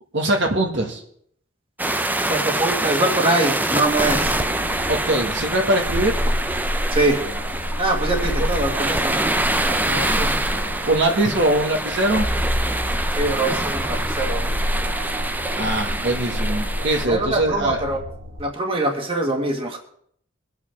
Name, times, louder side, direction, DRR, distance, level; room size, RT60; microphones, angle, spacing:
voice 1, 0.1-1.0 4.9-6.1 9.9-10.4 10.8-12.3 15.6-17.8, right 1 dB, 65° right, 2 dB, 1.8 m, -22 dB
sound 1, 1.8-17.1, right 1 dB, 10° right, 0.5 m, -25 dB
voice 2, 2.3-4.3 6.9-7.2 7.8-9.3 13.1-14.5 17.0-18.0 18.4-19.8, right 2 dB, 30° right, 2 dB, 1.9 m, -23 dB
sound 2, 3.9-18.4, equal, 80° right, 4.5 m, -28 dB
23.5 x 8.8 x 3.6 m, 0.65 s
head